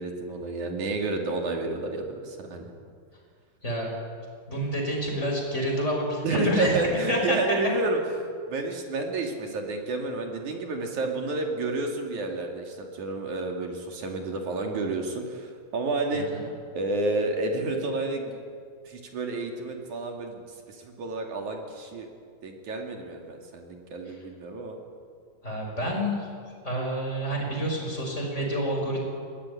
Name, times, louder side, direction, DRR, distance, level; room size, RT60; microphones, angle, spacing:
voice 1, 0.0-2.7 6.2-16.3 16.8-18.4 18.9-20.4 20.7-22.1 22.4-24.8, right 2 dB, 50° right, 2 dB, 3.5 m, -30 dB
voice 2, 4.5-6.8 7.1-7.4 16.1-16.5 25.4-26.3 26.6-29.1, equal, 15° left, 0 dB, 5.6 m, -28 dB
22.0 x 19.0 x 9.8 m, 2.2 s
omnidirectional pair, 5.0 m